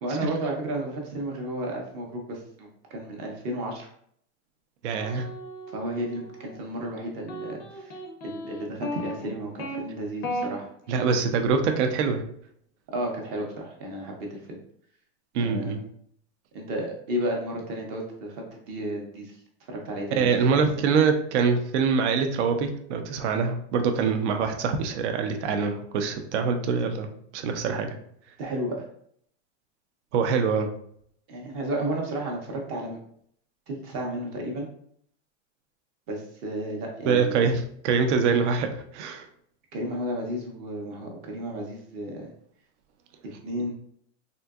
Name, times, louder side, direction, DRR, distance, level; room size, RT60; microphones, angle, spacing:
voice 1, 0.0-3.9 5.7-8.0 8.2-10.7 12.9-14.6 15.4-15.7 16.5-19.4 19.7-20.6 28.4-28.9 31.3-33.0 33.7-34.7 36.1-37.5 39.7-42.3 43.4-43.7, right 1 dB, 30° right, 1 dB, 0.5 m, -33 dB
voice 2, 4.8-5.3 10.9-12.2 15.3-15.8 20.1-27.1 27.3-27.9 30.1-30.7 37.1-37.5 37.8-39.3, right 5 dB, 80° right, 6 dB, 0.6 m, -24 dB
sound 1, 5.0-6.6 7.3-9.8 10.2-10.5, equal, 30° left, 0.4 m, -35 dB
3.7 x 2.6 x 2.3 m, 0.66 s
supercardioid pair, 170°, 34 cm